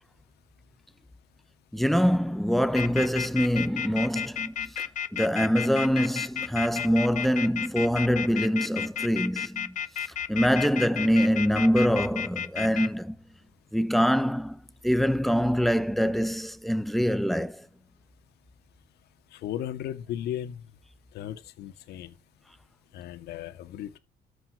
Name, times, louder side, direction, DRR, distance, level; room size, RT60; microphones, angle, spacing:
voice 1, 1.7-4.7 5.1-9.7 10.3-13.1 13.7-14.6 14.8-17.6, equal, ahead, 1.0 m, -24 dB
sound 1, 2.7-12.9, left 9 dB, 50° left, 0.9 m, -32 dB
voice 2, 19.3-20.6 21.1-22.1 22.9-24.0, left 11 dB, 75° left, 2.0 m, -36 dB
13.5 x 8.8 x 4.9 m
cardioid pair, 110°, 17 cm